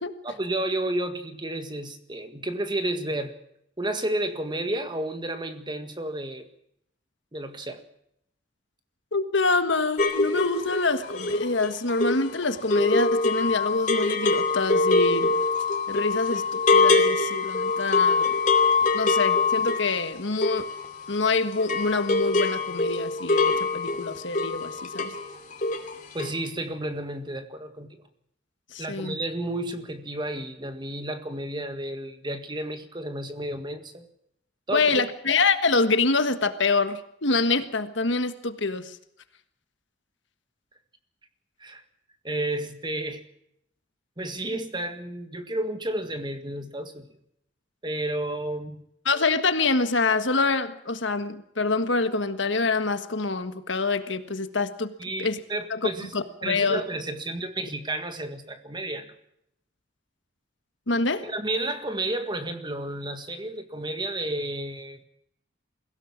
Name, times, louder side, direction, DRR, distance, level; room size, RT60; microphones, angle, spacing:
voice 1, 0.2-3.4 3.8-6.5 7.3-7.8 26.1-28.0 28.8-34.1 34.7-35.1 41.6-41.8 42.2-43.2 44.2-47.1 47.8-48.8 55.0-56.1 56.4-59.2 61.2-65.0, right 1 dB, 25° right, 8 dB, 1.7 m, -31 dB
voice 2, 9.1-15.3 15.9-18.3 18.9-20.7 21.1-25.2 28.7-29.2 34.7-39.0 49.0-54.9 55.2-55.4 55.7-56.8 60.9-61.2, left 3 dB, 65° left, 10 dB, 1.6 m, -26 dB
sound 1, 10.0-21.3 21.5-25.3 25.5-25.9 26.2-26.3, left 3 dB, 40° left, 2.7 m, -24 dB
22.0 x 16.5 x 7.4 m, 0.74 s
head